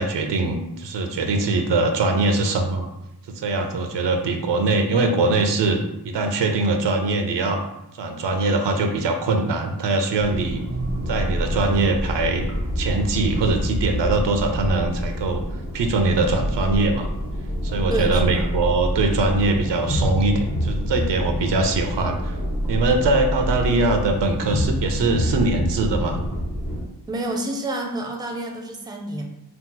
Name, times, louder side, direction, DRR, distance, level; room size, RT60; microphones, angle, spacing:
voice 1, 0.0-2.9 3.3-7.6 8.0-10.6 11.1-12.5 12.8-15.4 15.7-17.1 17.6-22.4 22.7-26.2, right 3 dB, 80° right, 5 dB, 0.5 m, -22 dB
sound 1, 10.2-26.8, equal, 45° left, 1.1 m, -27 dB
voice 2, 17.9-18.5 27.1-29.2, right 1 dB, 10° right, 2 dB, 0.4 m, -28 dB
2.8 x 2.0 x 3.7 m, 0.88 s
wide cardioid pair, 70°, 42 cm